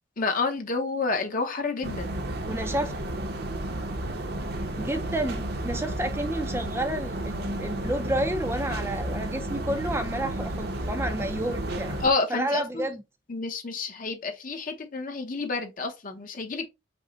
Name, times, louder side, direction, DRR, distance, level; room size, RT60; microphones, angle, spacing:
voice 1, 0.2-2.1 12.0-12.9 13.3-16.7, left 3 dB, 45° left, 0.8 m, -29 dB
sound 1, 1.8-12.1, right 1 dB, 55° right, 0.8 m, -32 dB
voice 2, 2.4-2.9 4.8-12.0 12.3-13.0, right 1 dB, 15° right, 0.5 m, -30 dB
5.4 x 2.1 x 3.9 m
head